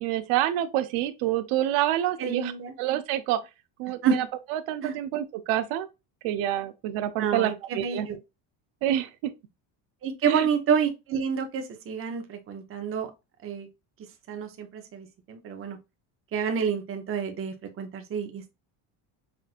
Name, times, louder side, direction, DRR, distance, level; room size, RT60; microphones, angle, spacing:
voice 1, 0.0-2.5 2.8-3.4 3.8-4.2 4.5-5.9 6.2-8.1 8.8-9.3 10.3-10.5, right 12 dB, 85° right, 0.7 m, -27 dB
voice 2, 2.2-2.7 4.0-4.2 4.8-5.0 7.2-8.2 10.0-13.1 13.4-13.7 14.3-15.8 16.3-18.5, right 7 dB, 30° right, 0.6 m, -29 dB
5.8 x 2.5 x 2.4 m
cardioid pair, 160°, 47 cm